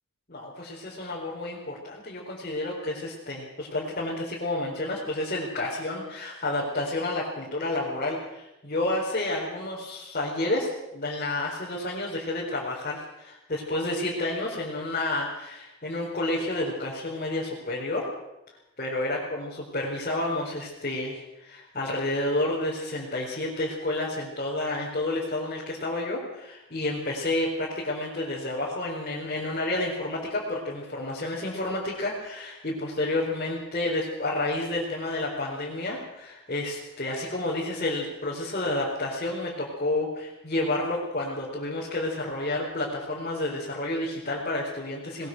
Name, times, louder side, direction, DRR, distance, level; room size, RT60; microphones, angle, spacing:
voice 1, 0.3-18.1 18.8-45.3, left 2 dB, 40° left, -5 dB, 4.6 m, -30 dB
22.0 x 21.0 x 6.3 m, 0.92 s
head